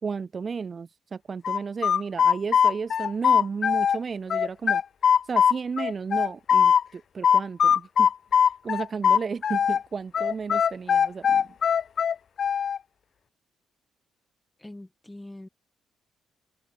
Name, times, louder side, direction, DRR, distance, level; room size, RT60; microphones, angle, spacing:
voice 1, 0.0-4.8 5.3-8.1 8.6-11.5, right 5 dB, 40° right, 1.6 m, -33 dB
sound 1, 1.4-4.0 4.3-6.8 7.2-9.8 10.1-12.8, left 7 dB, 55° left, 0.6 m, -21 dB
voice 2, 14.6-15.5, left 1 dB, 10° left, 2.3 m, -43 dB
cardioid pair, 90°, 0 cm